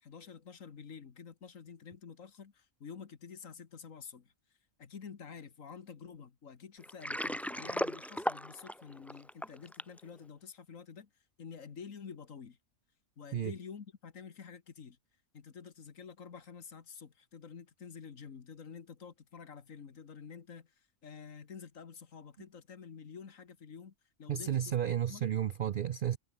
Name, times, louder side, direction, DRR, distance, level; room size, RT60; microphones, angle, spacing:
voice 1, 0.0-4.3 4.8-11.1 11.4-12.6 13.2-15.0 15.3-24.8 25.1-25.3, left 6 dB, 65° left, 1.9 m, -49 dB
Water, 6.8-10.0, equal, ahead, 1.1 m, -36 dB
voice 2, 24.3-26.2, right 9 dB, 70° right, 0.5 m, -32 dB
omnidirectional pair, 1.5 m